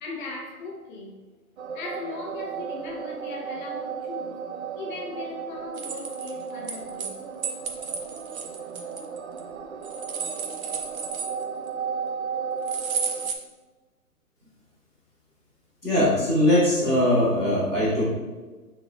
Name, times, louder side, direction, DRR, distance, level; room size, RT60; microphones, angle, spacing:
voice 1, 0.0-1.2 1.7-4.4 4.7-7.2, left 3 dB, 30° left, -1 dB, 1.2 m, -38 dB
sound 1, 1.6-13.3, right 6 dB, 50° right, 0.6 m, -35 dB
sound 2, 5.7-7.1 7.4-9.4 9.8-11.7 12.7-13.3, right 6 dB, 65° right, 1.0 m, -32 dB
voice 2, 15.8-18.0, left 1 dB, 5° right, -17 dB, 0.4 m, -21 dB
9.3 x 4.1 x 2.5 m, 1.3 s
hypercardioid pair, 140°, 44 cm